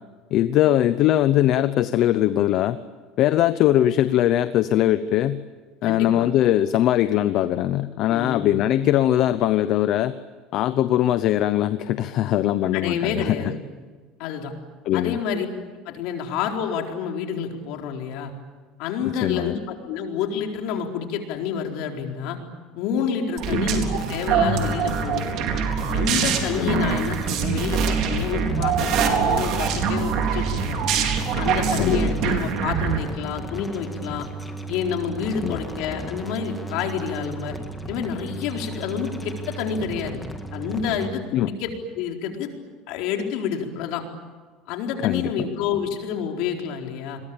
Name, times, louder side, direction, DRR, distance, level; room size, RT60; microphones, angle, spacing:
voice 1, 0.3-2.8 3.2-5.4 5.8-10.1 10.5-13.4 14.9-15.2 19.2-19.5 23.5-23.6 26.6-26.9 31.8-32.1 35.4-35.6 41.3-41.5 45.0-45.3, left 12 dB, 45° left, 12 dB, 0.8 m, -21 dB
voice 2, 5.8-6.3 8.1-8.7 12.7-13.6 14.2-14.5 14.9-15.5 15.9-18.3 18.8-22.4 22.7-25.3 25.9-30.8 31.3-34.3 34.7-37.6 37.9-40.2 40.5-42.5 42.9-44.0 44.7-47.2, left 7 dB, 60° left, 3 dB, 4.2 m, -28 dB
sound 1, 23.4-33.0, right 6 dB, 50° right, 4.0 m, -24 dB
sound 2, 24.7-41.1, right 1 dB, 5° left, 1.9 m, -35 dB
29.0 x 22.0 x 8.9 m, 1.4 s
cardioid pair, 170°, 0 cm